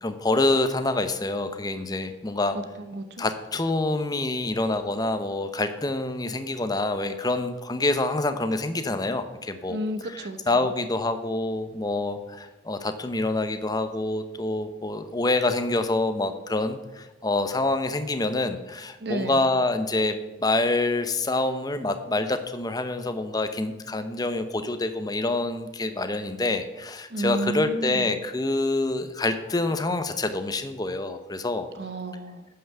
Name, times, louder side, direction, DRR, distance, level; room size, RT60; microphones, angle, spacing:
voice 1, 0.0-2.6 3.2-9.8 10.1-31.7, left 2 dB, 20° left, 9 dB, 0.7 m, -26 dB
voice 2, 2.5-3.2 9.7-10.7 19.0-19.5 27.1-28.1 31.8-32.4, right 1 dB, 65° right, 10 dB, 0.8 m, -32 dB
9.2 x 5.8 x 6.7 m, 1.1 s
head